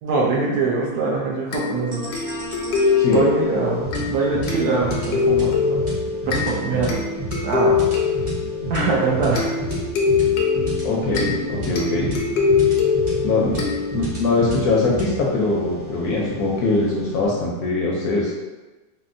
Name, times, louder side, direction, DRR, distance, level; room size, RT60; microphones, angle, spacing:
voice 1, 0.0-2.1 3.1-5.8 6.2-6.9 7.4-7.7 8.7-9.5 13.5-13.7, right 4 dB, 70° right, -3 dB, 1.0 m, -23 dB
sound 1, 1.5-14.3, left 5 dB, 90° left, 1.3 m, -23 dB
sound 2, 1.9-17.3, right 2 dB, 35° right, 0.4 m, -31 dB
voice 2, 3.0-3.3 10.8-12.2 13.2-13.5 13.9-18.3, left 3 dB, 70° left, -3 dB, 0.9 m, -22 dB
4.2 x 2.0 x 2.5 m, 1.2 s
omnidirectional pair, 1.9 m